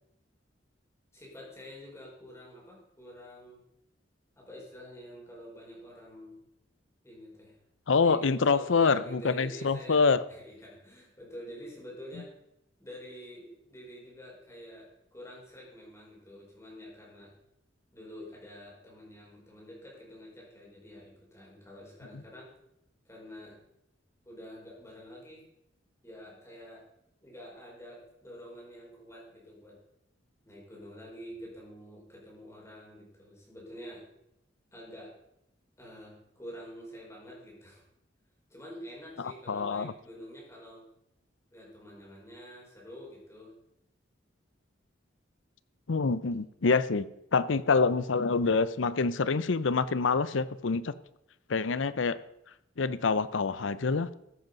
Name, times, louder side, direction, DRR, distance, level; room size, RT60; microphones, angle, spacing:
voice 1, 1.1-3.6 4.3-6.4 7.0-7.6 8.0-12.3 12.8-17.3 17.9-22.5 23.0-23.6 24.2-25.5 26.0-26.9 27.2-29.8 30.4-34.0 34.7-35.2 35.8-37.8 38.5-40.9 41.5-43.5, equal, 15° left, -4 dB, 4.9 m, -47 dB
voice 2, 7.9-10.2 39.2-39.9 45.9-47.1 47.3-50.9 51.5-52.2 52.8-54.1, left 4 dB, 90° left, 16 dB, 0.6 m, -26 dB
14.5 x 8.1 x 5.3 m, 0.82 s
head